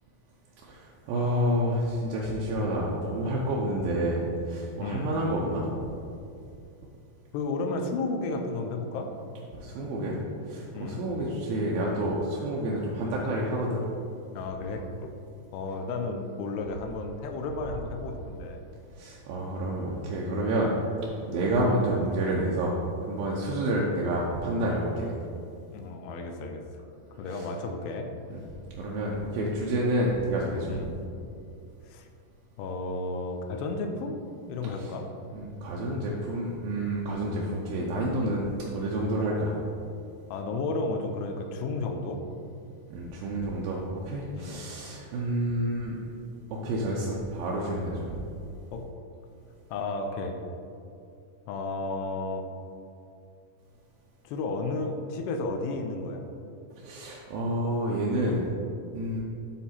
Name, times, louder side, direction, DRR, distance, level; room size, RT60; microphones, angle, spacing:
voice 1, 0.6-5.7 9.5-10.2 10.5-13.9 18.9-20.8 21.3-25.1 27.3-27.5 28.3-28.4 28.8-30.7 34.8-34.9 35.3-39.6 42.9-46.0 46.5-48.1 56.8-58.5 58.9-59.2, right 1 dB, 80° right, -4 dB, 2.1 m, -29 dB
voice 2, 4.8-5.2 7.3-9.1 10.7-11.1 14.3-14.9 15.5-18.6 23.4-23.6 25.7-26.6 27.2-28.1 30.7-30.9 31.9-32.1 32.6-34.2 34.5-35.1 37.0-37.2 38.2-38.3 40.3-42.2 44.4-44.7 48.7-48.9 49.7-50.4 51.5-52.5 54.2-56.2, left 3 dB, 85° left, 4 dB, 2.7 m, -33 dB
9.4 x 3.7 x 4.2 m, 2.5 s
omnidirectional pair, 4.9 m